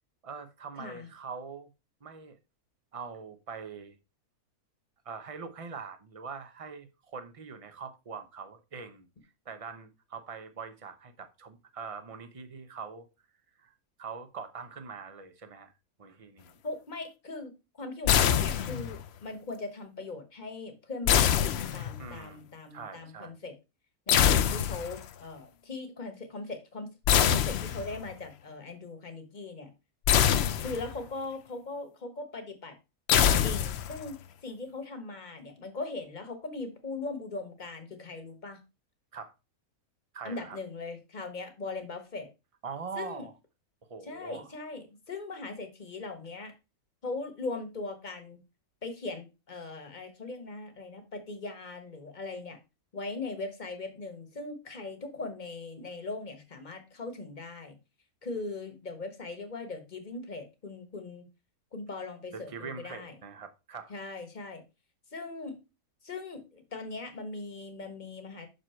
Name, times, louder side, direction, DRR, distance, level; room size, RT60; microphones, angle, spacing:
voice 1, 0.2-1.7 2.0-2.4 2.9-4.0 5.0-9.1 9.5-13.1 13.6-13.7 14.0-15.7 16.0-16.6 22.0-23.3 39.1-39.3 40.1-40.6 42.6-43.3 43.9-44.5 62.3-63.9, right 5 dB, 30° right, 0.7 m, -43 dB
voice 2, 16.6-23.5 24.1-29.7 30.6-32.7 33.4-38.6 40.2-42.3 42.9-43.3 44.0-46.5 47.0-48.4 48.8-52.6 52.9-57.8 58.2-61.2 61.7-63.1 63.9-64.6 65.1-65.6 66.0-68.5, left 3 dB, 35° left, 1.3 m, -40 dB
sound 1, 18.1-19.0 21.1-22.2 24.1-25.1 27.1-28.1 30.1-31.1 33.1-34.1, left 9 dB, 65° left, 0.6 m, -25 dB
6.1 x 5.3 x 4.4 m
omnidirectional pair, 1.6 m